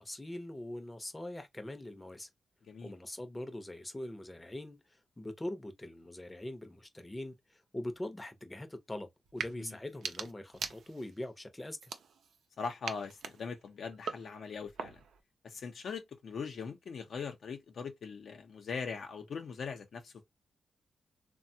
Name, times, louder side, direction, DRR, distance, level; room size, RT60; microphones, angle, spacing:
voice 1, 0.0-2.3 2.8-11.9, left 1 dB, 15° left, 0.7 m, -43 dB
voice 2, 2.6-2.9 9.5-9.8 12.6-15.0 15.4-20.1, left 5 dB, 70° left, 0.7 m, -41 dB
sound 1, 9.3-9.5 9.9-11.2 11.8-12.5 12.8-15.2, right 6 dB, 80° right, 0.5 m, -42 dB
3.3 x 2.2 x 2.7 m
cardioid pair, 85°, 0 cm